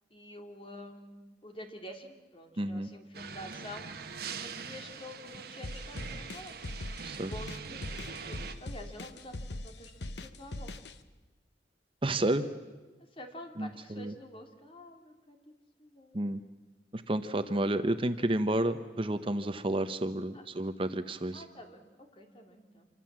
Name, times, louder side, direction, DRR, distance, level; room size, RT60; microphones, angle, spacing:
voice 1, 0.1-3.9 4.4-6.6 7.2-10.7 13.2-15.5 15.8-16.3 20.3-20.4 21.3-22.9, left 1 dB, 30° left, 4 dB, 2.8 m, -48 dB
voice 2, 2.6-2.9 7.0-7.3 12.0-12.5 13.6-14.1 16.1-16.4 16.9-21.4, right 1 dB, 30° right, 9 dB, 0.8 m, -31 dB
sound 1, 3.1-8.6, right 5 dB, 60° right, 1.5 m, -43 dB
sound 2, 5.6-10.9, left 2 dB, 70° left, 1.2 m, -40 dB
26.5 x 24.5 x 7.5 m, 1.2 s
head